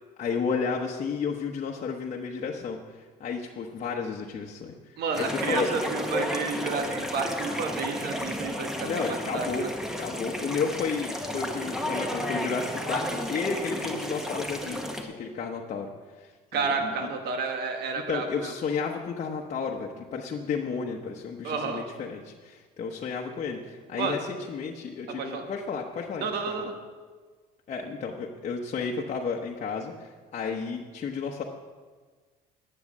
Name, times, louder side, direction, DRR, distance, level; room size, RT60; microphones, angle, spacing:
voice 1, 0.2-4.8 5.2-5.7 8.8-9.7 10.0-15.9 16.2-17.1 18.1-24.2 24.5-26.3 26.6-26.7 27.7-31.4, left 5 dB, 45° left, -1 dB, 1.0 m, -32 dB
voice 2, 5.0-9.5 16.5-18.5 21.4-21.8 23.9-24.2 25.2-25.4 26.2-26.7, right 4 dB, 75° right, 4 dB, 1.4 m, -31 dB
sound 1, 5.1-15.0, equal, 5° right, 1.4 m, -32 dB
10.5 x 7.8 x 7.3 m, 1.4 s
cardioid pair, 110°, 17 cm